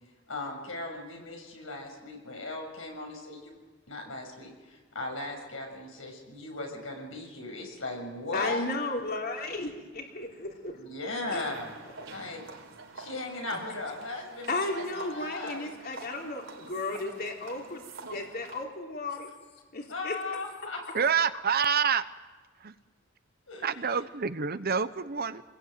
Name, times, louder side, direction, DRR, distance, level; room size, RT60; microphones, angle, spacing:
voice 1, 0.3-3.6 3.9-8.7 10.7-11.7 12.1-12.4 13.0-15.6 19.9-20.8 23.5-24.0, left 2 dB, 85° left, 2 dB, 7.0 m, -37 dB
voice 2, 8.3-10.7 11.3-11.4 14.5-17.8 18.1-19.3 19.7-20.2, left 2 dB, 50° left, 1 dB, 3.7 m, -34 dB
sound 1, 11.4-18.6, right 3 dB, 75° right, 4.4 m, -46 dB
voice 3, 20.9-22.0 22.6-22.7 23.6-25.4, right 6 dB, 50° right, 12 dB, 0.9 m, -27 dB
27.5 x 21.0 x 9.3 m, 1.3 s
head